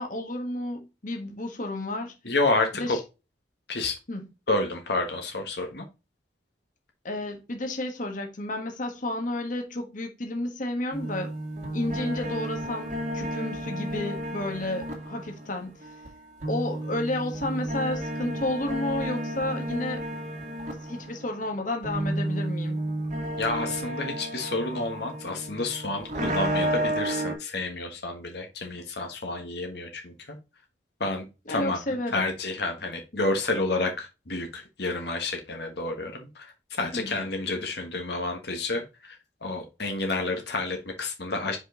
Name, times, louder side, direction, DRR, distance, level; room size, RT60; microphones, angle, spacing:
voice 1, 0.0-2.1 2.8-3.0 4.1-4.2 7.0-11.3 11.7-15.7 16.4-20.0 20.9-22.8 31.5-32.3 36.9-37.2, left 1 dB, 45° left, 1.5 m, -31 dB
voice 2, 2.2-3.0 3.7-4.0 4.5-5.8 23.4-30.4 31.0-31.8 32.1-39.1 39.4-41.6, left 2 dB, 65° left, 1.4 m, -30 dB
sound 1, 10.9-16.1 16.4-27.3, right 1 dB, 45° right, 2.0 m, -32 dB
5.4 x 5.2 x 3.8 m
head